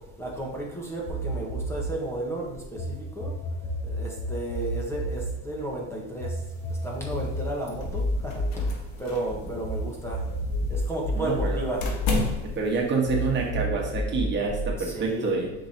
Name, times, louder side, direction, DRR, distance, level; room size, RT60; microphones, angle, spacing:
voice 1, 0.2-3.3 3.8-6.4 6.7-10.2 10.6-11.8 14.8-15.4, right 1 dB, 10° left, -2 dB, 1.5 m, -33 dB
sound 1, 1.1-2.9 3.2-9.8 10.1-12.7 13.1-14.7, equal, 85° left, 2.5 m, -31 dB
sound 2, 6.4-13.5, left 3 dB, 65° left, 1.5 m, -34 dB
voice 2, 11.1-11.7 12.4-15.5, right 4 dB, 35° right, -1 dB, 1.5 m, -27 dB
6.9 x 6.0 x 2.9 m, 0.95 s
supercardioid pair, 115°, 32 cm